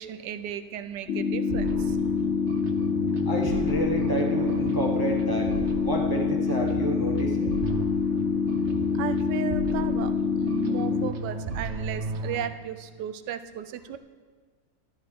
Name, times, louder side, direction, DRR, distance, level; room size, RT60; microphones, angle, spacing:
voice 1, 0.0-2.0 8.9-14.0, right 9 dB, 70° right, 11 dB, 1.2 m, -35 dB
sound 1, 1.1-11.1, left 6 dB, 55° left, 0.7 m, -26 dB
sound 2, 1.5-12.5, right 3 dB, 50° right, 0.9 m, -35 dB
voice 2, 3.2-7.5, right 2 dB, 15° right, 0 dB, 0.9 m, -30 dB
13.5 x 12.5 x 3.7 m, 1.5 s
omnidirectional pair, 2.0 m